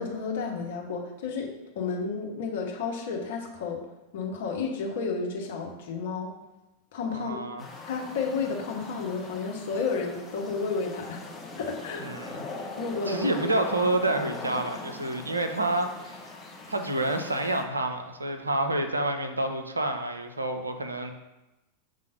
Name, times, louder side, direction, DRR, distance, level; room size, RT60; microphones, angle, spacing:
voice 1, 0.0-3.8 4.1-6.3 6.9-7.4 7.9-11.2 11.6-12.0 12.8-13.6, left 4 dB, 55° left, 1 dB, 1.2 m, -31 dB
voice 2, 7.1-7.6 12.0-12.4 13.1-16.3 16.7-21.1, right 2 dB, 80° right, 6 dB, 0.7 m, -28 dB
sound 1, 7.6-17.6, left 3 dB, 10° left, 1.3 m, -41 dB
6.6 x 3.7 x 5.2 m, 0.99 s
figure-of-eight pair, 90°, 0 cm